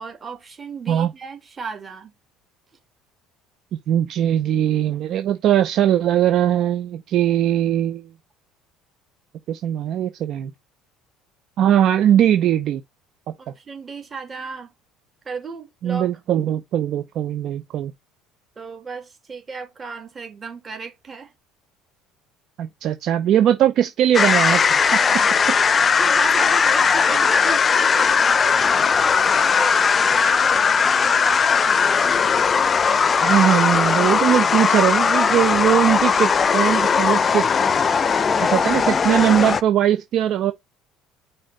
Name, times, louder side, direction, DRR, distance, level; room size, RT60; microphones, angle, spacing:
voice 1, 0.0-2.1 13.4-14.7 15.2-16.1 18.6-21.3 25.9-32.4, right 4 dB, 25° right, 2.9 m, -35 dB
voice 2, 3.9-8.0 9.5-10.5 11.6-12.8 13.3-13.4 15.8-17.9 22.6-25.0 27.1-27.2 33.2-37.4 38.5-40.5, right 10 dB, 55° right, 0.7 m, -20 dB
sound 1, 24.1-39.6, left 6 dB, 30° left, 0.6 m, -18 dB
5.6 x 4.0 x 5.1 m
supercardioid pair, 105°, 0 cm